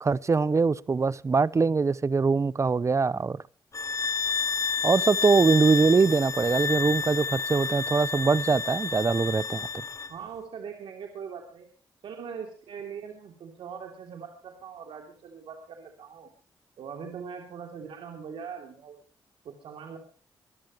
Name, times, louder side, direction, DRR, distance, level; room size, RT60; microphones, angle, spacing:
voice 1, 0.0-3.4 4.8-9.7, right 4 dB, 35° right, 0.8 m, -23 dB
sound 1, 3.7-10.1, left 5 dB, 35° left, 0.9 m, -30 dB
voice 2, 10.1-11.7 12.0-16.3 16.8-19.0 19.4-20.0, right 6 dB, 80° right, 2.9 m, -41 dB
24.5 x 12.5 x 3.1 m
cardioid pair, 65°, 9 cm